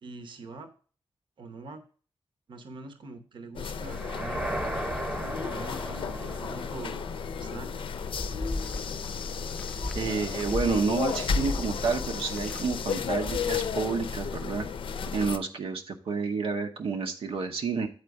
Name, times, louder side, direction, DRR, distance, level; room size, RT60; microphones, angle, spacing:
voice 1, 0.0-0.7 1.4-1.8 2.5-4.5 5.0-7.0 7.4-7.8, right 3 dB, 60° right, 7 dB, 0.8 m, -44 dB
sound 1, 3.5-15.4, left 6 dB, 70° left, 0.5 m, -33 dB
sound 2, 3.8-7.9, right 1 dB, 10° right, 0.8 m, -36 dB
sound 3, 7.9-13.7, left 2 dB, 10° left, 0.4 m, -38 dB
voice 2, 9.9-14.7 15.1-17.9, right 5 dB, 90° right, 4 dB, 0.8 m, -29 dB
8.1 x 4.4 x 4.7 m, 0.41 s
wide cardioid pair, 140°, 9 cm